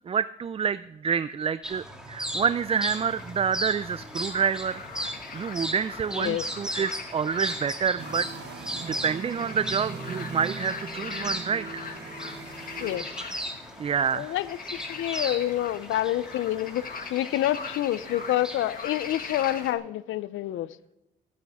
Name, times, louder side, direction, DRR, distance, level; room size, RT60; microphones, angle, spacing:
voice 1, 0.1-4.8 5.3-8.3 8.8-11.8 13.8-14.4, right 7 dB, 30° right, 15 dB, 0.4 m, -28 dB
sound 1, 1.6-19.7, equal, 5° right, 2.2 m, -38 dB
sound 2, 2.6-19.7, left 5 dB, 45° left, 1.8 m, -41 dB
voice 2, 6.1-6.4 12.8-13.1 14.1-16.8 17.1-20.8, left 13 dB, 80° left, 17 dB, 0.6 m, -28 dB
sound 3, 8.0-13.0, right 5 dB, 60° right, 1.5 m, -40 dB
15.0 x 9.4 x 3.6 m, 0.91 s
cardioid pair, 90°, 20 cm